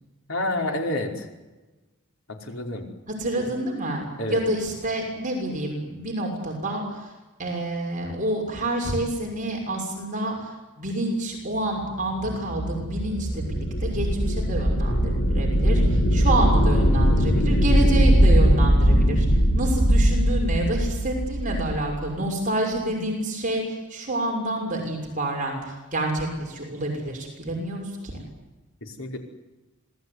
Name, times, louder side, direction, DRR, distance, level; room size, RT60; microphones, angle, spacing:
voice 1, 0.3-1.3 2.3-2.8 4.2-4.4 28.8-29.2, left 1 dB, 65° left, 2 dB, 5.2 m, -29 dB
voice 2, 3.1-7.1 7.4-19.3 19.5-28.2, right 1 dB, 35° right, 1 dB, 6.4 m, -28 dB
sound 1, 11.9-22.0, equal, 80° left, 7.5 m, -20 dB
27.0 x 19.0 x 9.8 m, 1.1 s
head